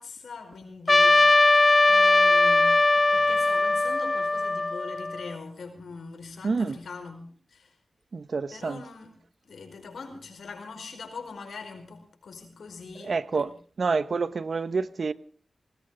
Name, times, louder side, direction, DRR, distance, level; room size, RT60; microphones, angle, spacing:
voice 1, 0.0-7.8 8.5-9.1 9.4-13.5, left 4 dB, 80° left, 4.9 m, -42 dB
Trumpet, 0.9-5.3, left 2 dB, 35° left, 0.8 m, -20 dB
voice 2, 6.4-6.8 8.1-8.8 13.0-13.5 13.8-15.1, right 4 dB, 60° right, 1.0 m, -28 dB
19.5 x 19.0 x 3.9 m
cardioid pair, 55°, 0 cm